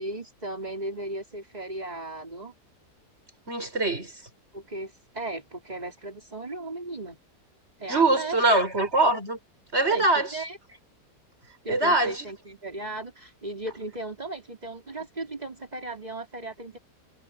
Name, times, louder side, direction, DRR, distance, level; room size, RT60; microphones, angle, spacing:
voice 1, 0.0-2.5 4.5-7.2 7.8-8.6 9.9-10.6 11.6-16.8, right 2 dB, 25° right, 3.9 m, -36 dB
voice 2, 3.5-4.1 7.9-9.4 9.7-10.4 11.7-12.3, right 2 dB, 40° right, 5.9 m, -23 dB
omnidirectional pair, 1.7 m